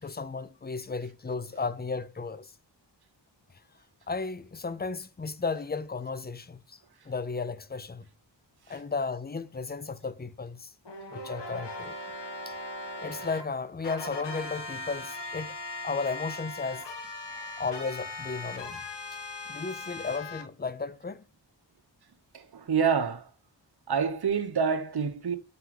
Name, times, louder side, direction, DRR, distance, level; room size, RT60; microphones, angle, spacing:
voice 1, 0.0-2.5 4.1-6.8 7.1-8.0 8.7-10.7 11.1-11.9 12.5-12.6 13.0-15.6 15.8-16.9 17.6-18.8 19.5-21.2, left 4 dB, 20° left, 0.5 m, -34 dB
sound 1, 10.8-13.4 13.8-20.4, left 2 dB, 70° left, 1.4 m, -39 dB
voice 2, 22.5-23.2 23.9-25.4, right 6 dB, 60° right, 1.0 m, -27 dB
4.9 x 4.6 x 5.1 m
wide cardioid pair, 70°, 44 cm